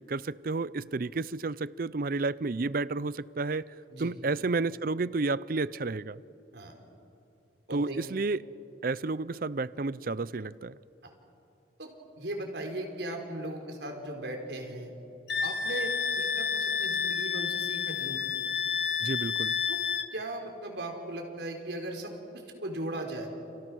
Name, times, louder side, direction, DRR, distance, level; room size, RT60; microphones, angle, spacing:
voice 1, 0.1-3.7 4.0-6.2 7.7-8.4 8.8-10.7 19.0-19.5, right 3 dB, 50° right, 0.6 m, -31 dB
voice 2, 11.8-14.9 15.4-18.2 19.7-19.8 20.1-23.3, right 1 dB, 75° right, 4.5 m, -38 dB
Wind instrument woodwind instrument, 15.3-20.1, left 6 dB, 70° left, 1.3 m, -30 dB
30.0 x 29.0 x 6.4 m
head